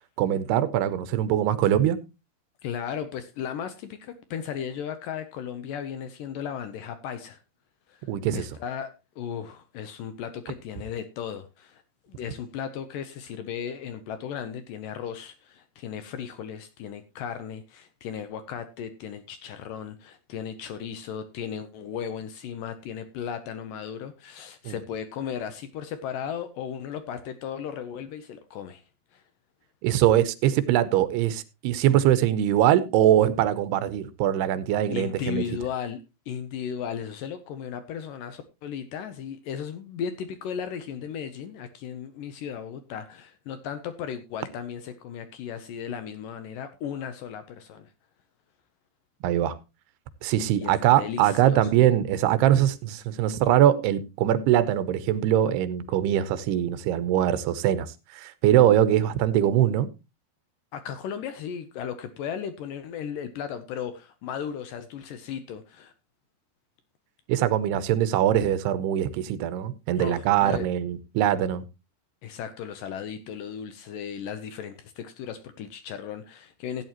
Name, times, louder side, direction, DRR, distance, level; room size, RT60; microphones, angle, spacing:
voice 1, 0.2-2.0 8.1-8.5 24.7-24.8 29.8-35.4 49.2-49.6 50.2-59.9 67.3-71.6, right 11 dB, 85° right, 2.8 m, -22 dB
voice 2, 2.6-7.4 7.9-8.1 8.3-8.9 9.2-11.8 12.1-28.8 29.1-29.2 34.9-36.0 36.3-47.9 50.6-51.6 60.7-65.9 70.0-70.7 72.2-76.8, left 8 dB, 75° left, 2.1 m, -36 dB
15.5 x 9.1 x 3.0 m
omnidirectional pair, 4.6 m